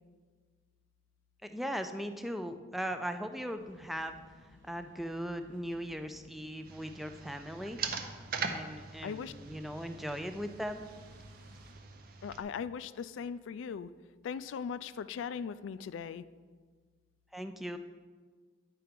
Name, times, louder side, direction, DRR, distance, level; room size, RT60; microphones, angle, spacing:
voice 1, 1.4-4.2 4.6-7.8 8.5-10.9 17.3-17.8, equal, ahead, 7 dB, 0.3 m, -38 dB
sound 1, 3.6-11.7, equal, 75° right, 1.2 m, -62 dB
sound 2, 6.6-12.4, right 5 dB, 50° right, 0.6 m, -42 dB
voice 2, 8.2-8.7 9.0-9.6 11.4-11.7 12.2-13.9 14.2-16.2, left 6 dB, 85° left, 14 dB, 0.3 m, -40 dB
10.0 x 4.6 x 5.1 m, 1.5 s
head